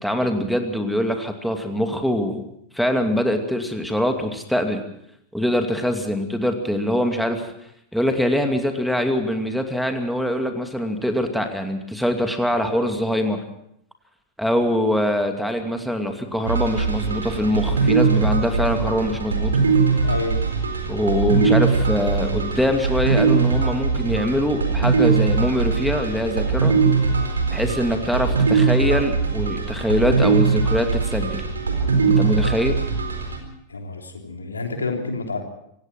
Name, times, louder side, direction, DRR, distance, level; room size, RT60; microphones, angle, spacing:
voice 1, 0.0-2.5 2.7-4.8 5.3-7.5 7.9-13.4 14.4-19.5 20.9-26.7 27.5-31.4 32.0-32.8, equal, ahead, 4 dB, 2.4 m, -23 dB
sound 1, 16.5-33.4, right 4 dB, 75° right, 4.2 m, -21 dB
voice 2, 20.0-20.4 33.7-35.4, left 3 dB, 75° left, 3 dB, 3.4 m, -28 dB
26.0 x 17.5 x 6.0 m, 0.74 s
figure-of-eight pair, 90°, 0 cm